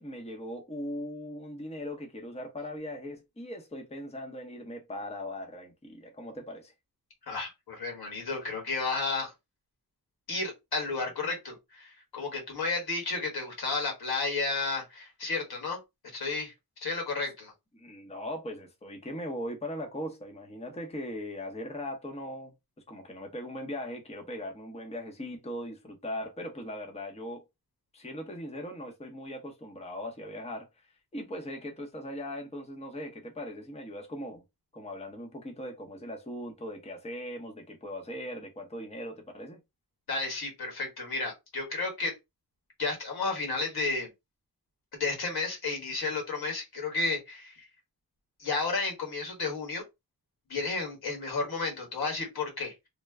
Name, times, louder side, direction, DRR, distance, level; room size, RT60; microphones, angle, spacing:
voice 1, 0.0-6.7 17.7-22.5 22.9-27.4 27.9-30.9 31.1-34.4 34.7-39.6, left 1 dB, 15° left, 0.8 m, -39 dB
voice 2, 7.3-9.3 10.3-15.8 16.1-16.5 16.8-17.5 40.1-42.1 42.8-44.1 44.9-47.7 48.4-49.8 50.5-52.9, left 3 dB, 85° left, 1.6 m, -32 dB
3.2 x 2.1 x 3.4 m
wide cardioid pair, 110°, 37 cm